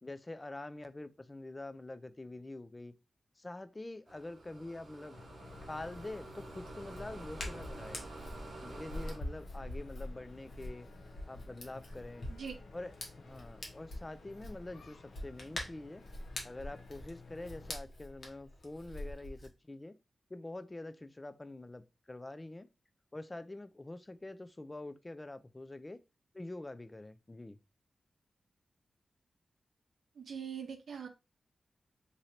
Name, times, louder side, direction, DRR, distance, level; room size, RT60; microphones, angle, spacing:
voice 1, 0.0-2.9 3.4-5.2 5.7-8.0 8.6-10.9 11.3-12.3 12.7-16.0 16.4-20.0 20.3-22.7 23.1-26.0 26.3-27.6, left 2 dB, 20° left, 0.3 m, -46 dB
sound 1, 4.1-9.2, right 2 dB, 55° right, 1.0 m, -49 dB
sound 2, 5.1-17.7, left 3 dB, 85° left, 0.7 m, -55 dB
Hands, 5.5-19.5, left 1 dB, 60° left, 1.1 m, -46 dB
voice 2, 30.2-31.1, right 7 dB, 85° right, 0.6 m, -42 dB
3.1 x 2.6 x 4.1 m
wide cardioid pair, 150°, 0 cm